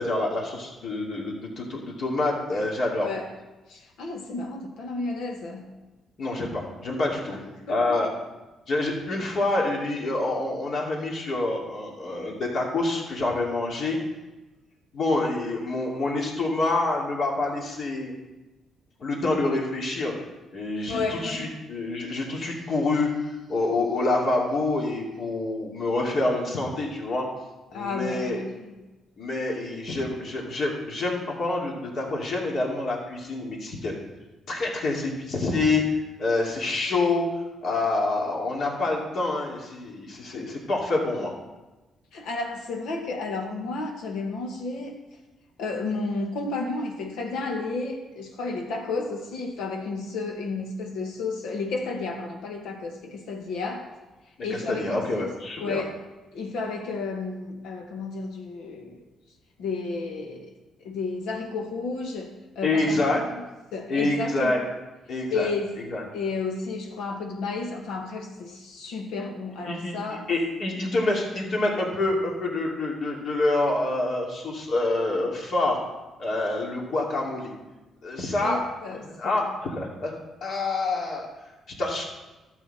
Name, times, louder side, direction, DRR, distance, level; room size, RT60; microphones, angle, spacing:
voice 1, 0.0-3.1 6.2-7.4 7.7-8.1 8.7-14.0 14.9-18.1 19.0-20.1 20.5-27.2 27.7-28.4 29.2-34.0 34.5-35.8 36.2-37.2 37.6-41.3 54.5-55.8 62.6-63.2 63.9-64.6 65.1-65.5 65.9-66.0 69.6-69.9 70.3-75.8 76.2-77.5 78.0-78.6 79.0-80.1 80.4-81.3 81.8-82.0, left 2 dB, 55° left, -2 dB, 2.7 m, -27 dB
voice 2, 3.0-3.3 3.7-5.7 7.3-8.0 20.9-21.5 27.7-28.7 40.3-40.6 42.1-45.0 45.6-53.9 54.4-55.3 55.6-56.0 56.3-59.0 59.6-60.5 60.8-63.4 63.7-64.6 65.3-65.7 66.1-70.3 78.4-79.4, left 3 dB, 85° left, 2 dB, 1.7 m, -32 dB
12.5 x 7.4 x 4.3 m, 1.1 s
cardioid pair, 90°, 0 cm